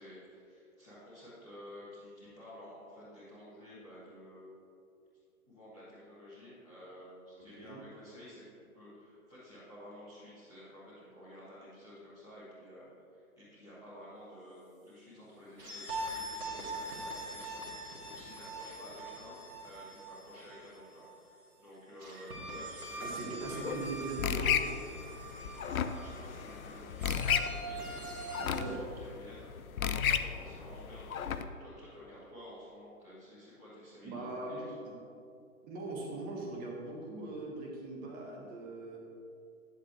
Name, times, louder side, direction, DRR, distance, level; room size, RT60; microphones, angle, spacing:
voice 1, 0.0-4.6 5.5-17.7 18.0-23.1 23.4-23.6 25.6-29.5 30.0-34.7, equal, 5° left, -18 dB, 0.4 m, -52 dB
sound 1, 15.6-21.2 22.0-28.6, right 1 dB, 85° right, 2.2 m, -43 dB
voice 2, 23.0-24.8 28.3-28.8 34.0-34.9 35.7-39.0, right 2 dB, 20° right, -2 dB, 1.6 m, -40 dB
sound 2, 23.4-31.4, left 8 dB, 70° left, 0.6 m, -34 dB
11.0 x 8.2 x 3.2 m, 2.5 s
figure-of-eight pair, 125°, 43 cm